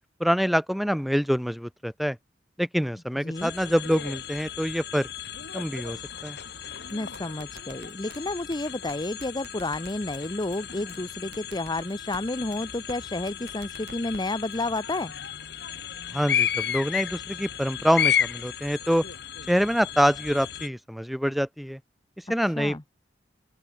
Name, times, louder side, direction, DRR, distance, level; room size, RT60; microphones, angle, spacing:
voice 1, 0.2-2.2 2.6-5.1 5.5-6.4 16.1-19.0 19.5-21.8 22.3-22.8, equal, ahead, 0.7 m, -25 dB
voice 2, 3.2-3.5 6.9-15.1 22.4-22.8, left 2 dB, 25° left, 0.9 m, -31 dB
sound 1, 3.3-20.7, left 9 dB, 65° left, 1.6 m, -33 dB
sound 2, 6.9-8.2 8.5-8.6 8.9-9.0 9.2-10.2 10.5-10.6 10.9-11.0 11.3-12.2 12.5-12.6 12.9-13.0 13.3-14.2 14.5-14.8, right 3 dB, 65° right, 4.3 m, -46 dB
open air
head